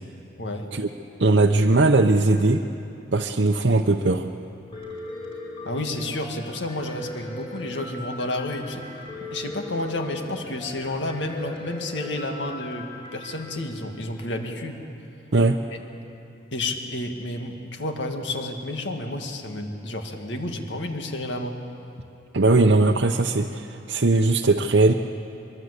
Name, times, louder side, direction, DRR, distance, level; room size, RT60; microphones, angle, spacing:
voice 1, 1.2-2.7 3.1-4.3 15.3-15.6 22.3-24.9, right 2 dB, 70° right, 2 dB, 0.8 m, -19 dB
Piano, 4.7-13.4, left 2 dB, 30° left, 4.4 m, -38 dB
voice 2, 5.7-8.8 9.2-14.8 15.7-15.8 16.5-21.6, left 1 dB, 70° left, 4 dB, 2.1 m, -31 dB
23.5 x 23.5 x 8.3 m, 2.8 s
head